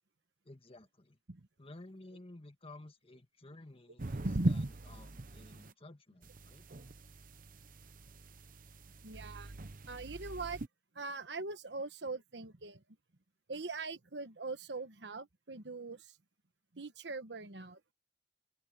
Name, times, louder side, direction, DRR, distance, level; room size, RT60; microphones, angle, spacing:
voice 1, 0.4-1.2 1.6-6.6, left 2 dB, 35° left, 1.6 m, -54 dB
sound 1, 4.0-5.7 6.2-10.7, right 1 dB, 50° right, 0.9 m, -39 dB
voice 2, 9.0-9.6 9.9-10.6 10.9-12.8 13.5-16.2 16.7-17.8, right 3 dB, 75° right, 1.3 m, -42 dB
open air
head